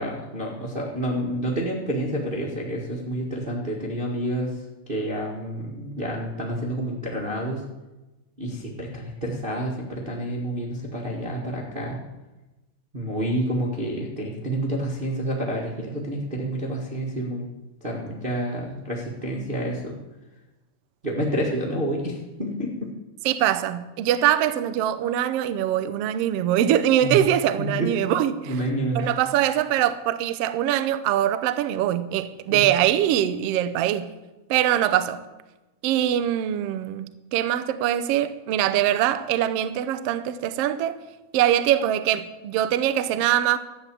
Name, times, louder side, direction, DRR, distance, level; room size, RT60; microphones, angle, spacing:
voice 1, 0.0-4.6 4.9-7.6 8.4-12.0 12.9-17.5 17.8-19.9 21.0-22.9 27.0-27.2 27.6-28.1 28.5-29.2 32.5-32.6, right 1 dB, 20° right, 1.5 m, -29 dB
voice 2, 23.2-28.6 28.9-34.1 34.5-35.2 35.8-41.0 41.3-43.6, right 11 dB, 75° right, 1.5 m, -23 dB
13.5 x 9.2 x 7.6 m
omnidirectional pair, 3.6 m